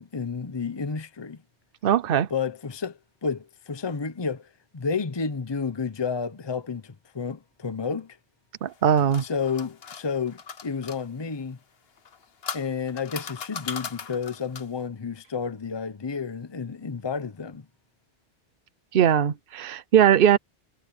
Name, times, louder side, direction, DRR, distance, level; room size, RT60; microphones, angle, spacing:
voice 1, 0.0-1.4 2.3-8.2 9.2-11.6 12.5-17.7, left 5 dB, 25° left, 0.8 m, -31 dB
voice 2, 1.8-2.3 8.6-9.2 18.9-20.4, right 9 dB, 55° right, 0.9 m, -20 dB
sound 1, 8.7-11.0 12.0-14.8, left 6 dB, 60° left, 1.3 m, -38 dB
omnidirectional pair, 1.2 m